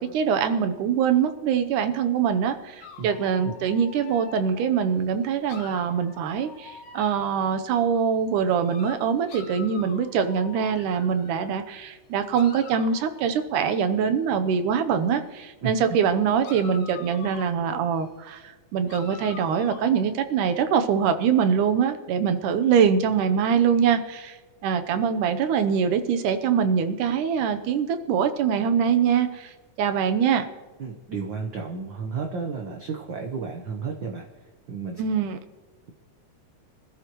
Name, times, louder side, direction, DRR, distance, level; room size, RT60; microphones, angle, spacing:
voice 1, 0.0-30.5 35.0-35.4, right 7 dB, 80° right, 8 dB, 2.4 m, -23 dB
sound 1, 2.8-4.9 5.4-7.5 8.5-11.5 12.3-14.3 15.9-16.1 16.4-18.1 18.9-20.6, left 5 dB, 65° left, 2.9 m, -46 dB
voice 2, 30.8-35.0, right 5 dB, 65° right, 1 dB, 1.2 m, -33 dB
25.5 x 13.0 x 3.1 m, 1.3 s
omnidirectional pair, 3.6 m